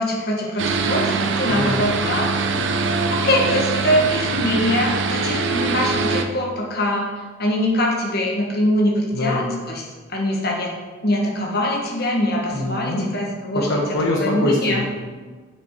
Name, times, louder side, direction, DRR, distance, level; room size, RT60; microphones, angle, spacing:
voice 1, 0.0-2.3 3.1-7.1 7.4-9.8 10.1-10.7 11.0-13.7 14.2-14.8, left 1 dB, 55° left, -1 dB, 1.4 m, -23 dB
sound 1, 0.6-6.2, right 4 dB, 65° right, 0.6 m, -23 dB
voice 2, 1.5-1.9 9.1-9.6 12.5-13.1 13.5-14.8, left 1 dB, 80° left, -1 dB, 1.0 m, -23 dB
7.9 x 5.2 x 4.7 m, 1.4 s
head